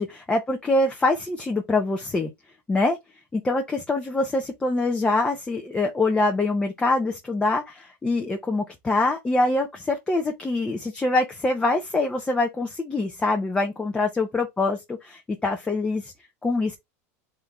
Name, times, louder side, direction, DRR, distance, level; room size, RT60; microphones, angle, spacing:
voice 1, 0.0-2.3 2.7-3.0 3.3-16.1 16.4-16.8, left 2 dB, 10° left, 0.6 m, -24 dB
3.7 x 3.3 x 4.1 m
supercardioid pair, 140°, 8 cm